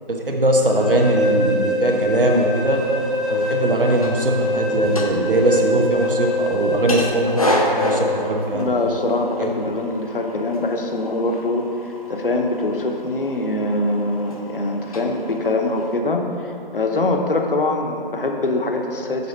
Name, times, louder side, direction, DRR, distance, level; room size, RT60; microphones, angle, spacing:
voice 1, 0.1-2.8 3.3-8.7 9.4-9.5, right 1 dB, 65° right, 1 dB, 1.1 m, -20 dB
sound 1, 0.7-8.3, equal, ahead, 0.4 m, -24 dB
sound 2, 2.7-16.0, left 1 dB, 40° left, 0.7 m, -31 dB
voice 2, 8.5-19.3, left 2 dB, 65° left, 3 dB, 0.8 m, -23 dB
6.9 x 4.2 x 6.5 m, 2.6 s
figure-of-eight pair, 160°, 30 cm